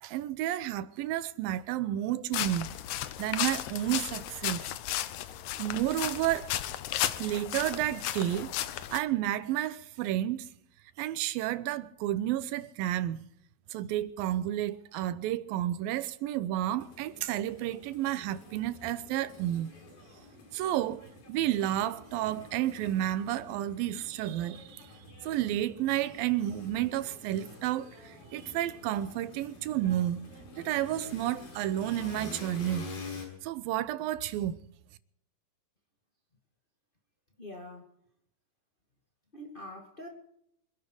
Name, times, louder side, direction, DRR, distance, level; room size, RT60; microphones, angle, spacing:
voice 1, 0.0-2.7 3.2-4.7 5.6-6.5 7.0-8.5 8.9-10.5 11.0-13.2 13.7-19.7 20.5-24.8 25.2-30.3 30.6-32.9 33.4-34.6, right 13 dB, 90° right, 2.6 m, -31 dB
sound 1, 2.3-9.0, left 12 dB, 70° left, 1.9 m, -34 dB
sound 2, 16.8-33.3, left 3 dB, 90° left, 7.1 m, -48 dB
voice 2, 37.4-37.9 39.3-40.1, left 1 dB, 20° left, 2.0 m, -44 dB
25.5 x 11.5 x 4.8 m
omnidirectional pair, 4.1 m